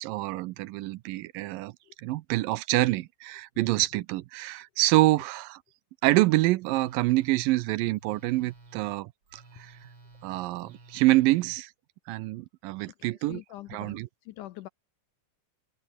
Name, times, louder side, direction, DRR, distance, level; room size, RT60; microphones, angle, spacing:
voice 1, 0.0-1.7 2.0-5.6 6.0-9.7 10.2-11.7 12.1-13.4 13.7-14.1, right 18 dB, 80° right, 2.2 m, -26 dB
Telephone, 6.6-11.6, right 3 dB, 30° right, 6.3 m, -53 dB
voice 2, 13.0-14.0 14.3-14.7, left 16 dB, 75° left, 1.9 m, -43 dB
open air
omnidirectional pair, 4.2 m